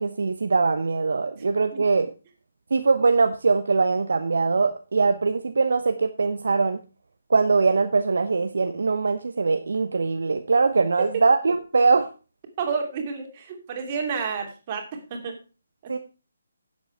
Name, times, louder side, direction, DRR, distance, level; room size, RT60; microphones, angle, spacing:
voice 1, 0.0-2.1 2.7-6.8 7.3-12.1 15.9-16.0, right 4 dB, 60° right, 7 dB, 0.9 m, -22 dB
voice 2, 12.6-15.4, right 5 dB, 30° right, 3 dB, 2.8 m, -30 dB
11.5 x 8.0 x 4.7 m, 0.33 s
figure-of-eight pair, 145°, 0 cm